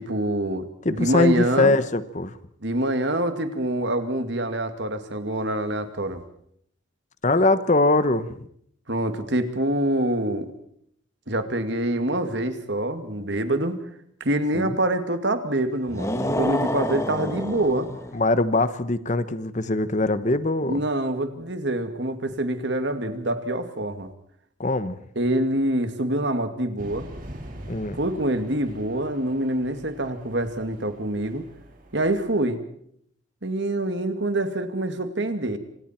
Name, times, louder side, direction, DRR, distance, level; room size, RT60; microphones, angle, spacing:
voice 1, 0.0-1.7 2.6-6.2 8.9-10.5 11.3-13.8 14.2-17.9 20.6-24.1 25.2-27.1 27.9-31.4 31.9-32.6 33.4-35.6, right 1 dB, 60° right, 8 dB, 2.3 m, -25 dB
voice 2, 0.8-2.4 7.2-8.4 14.5-14.8 18.1-20.8 24.6-25.0 27.7-28.0, left 2 dB, 35° left, 13 dB, 1.0 m, -22 dB
sound 1, 15.9-18.3, left 1 dB, 15° left, 1.8 m, -28 dB
sound 2, 26.8-32.4, right 1 dB, 45° right, 4.1 m, -43 dB
27.0 x 27.0 x 4.5 m, 0.66 s
head